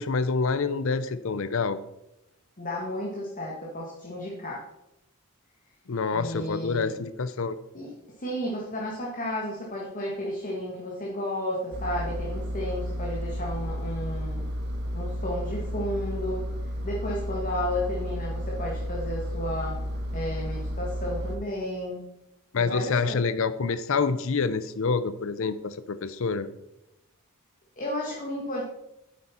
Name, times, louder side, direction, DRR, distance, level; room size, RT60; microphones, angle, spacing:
voice 1, 0.0-1.8 5.9-7.6 22.5-26.5, left 4 dB, 60° left, 14 dB, 0.5 m, -27 dB
voice 2, 2.6-4.6 6.1-6.9 7.7-7.9 8.2-14.5 14.9-16.4 16.8-19.8 20.1-22.0 22.5-23.2 27.8-28.7, left 1 dB, 35° left, -3 dB, 1.7 m, -32 dB
Engine, 11.7-21.4, equal, 50° right, 1.3 m, -32 dB
9.5 x 8.4 x 4.3 m, 0.88 s
head